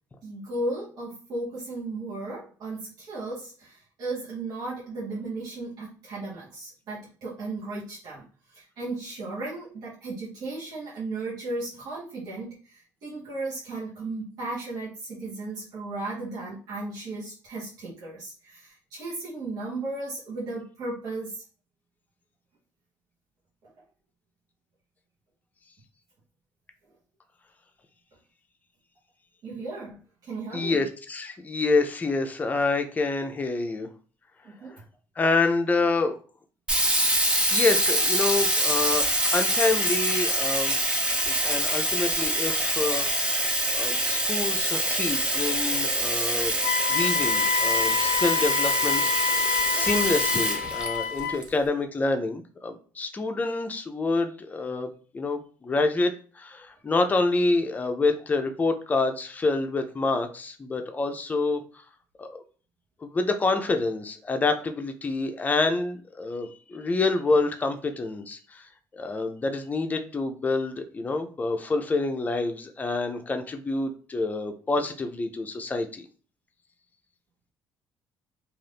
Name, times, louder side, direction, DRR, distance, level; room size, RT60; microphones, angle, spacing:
voice 1, 0.2-8.2 8.5-21.4 29.4-30.8 34.4-34.7, right 2 dB, 65° right, -7 dB, 0.9 m, -35 dB
voice 2, 30.5-33.9 35.2-36.1 37.5-40.8 41.2-43.1 43.7-46.6 46.9-61.8 62.2-62.4 63.0-76.1, left 3 dB, 25° left, 6 dB, 0.5 m, -27 dB
Sink (filling or washing), 36.7-51.4, right 1 dB, 15° right, 0.8 m, -25 dB
Wind instrument woodwind instrument, 46.6-51.4, left 6 dB, 80° left, 0.3 m, -27 dB
2.5 x 2.5 x 3.4 m, 0.40 s
cardioid pair, 95°, 7 cm